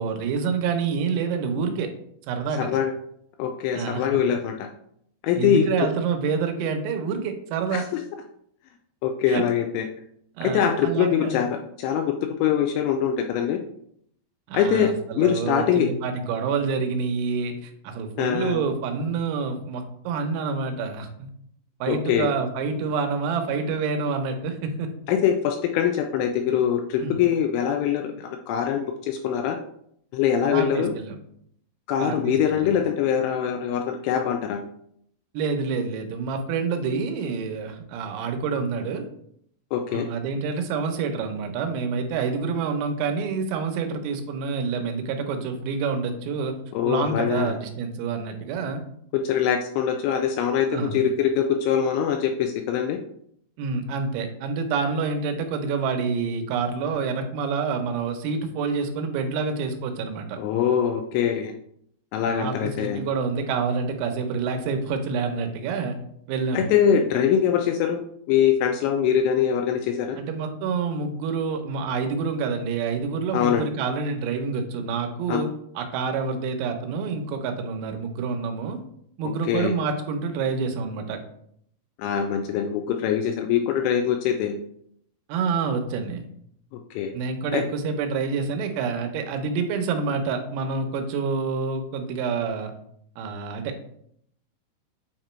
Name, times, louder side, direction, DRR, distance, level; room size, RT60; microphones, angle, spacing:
voice 1, 0.0-1.9 2.3-2.7 3.7-4.1 5.4-7.8 9.3-9.4 10.4-11.4 14.5-21.3 21.8-24.9 27.0-27.2 30.5-31.2 32.0-32.9 35.4-39.1 39.9-46.6 46.9-48.8 50.7-51.0 53.6-60.4 62.2-66.0 66.3-66.7 70.2-75.5 75.8-78.8 79.2-81.2 85.3-86.3 87.1-92.7 93.2-93.9, right 5 dB, 85° right, 5 dB, 3.5 m, -27 dB
voice 2, 2.6-2.9 3.4-4.7 5.2-5.9 7.7-7.8 9.0-9.9 10.4-12.1 12.4-13.6 14.5-14.9 15.2-15.9 18.2-18.6 21.9-22.3 25.1-29.6 30.1-30.9 31.9-34.6 39.7-40.1 46.7-47.6 49.1-53.0 60.4-61.5 62.1-63.0 66.5-68.0 68.3-70.2 73.3-73.7 75.3-75.4 79.5-79.7 82.0-84.6 86.9-87.1 87.5-87.6, left 8 dB, 85° left, 4 dB, 2.7 m, -23 dB
8.7 x 3.0 x 4.3 m, 0.70 s
omnidirectional pair, 5.8 m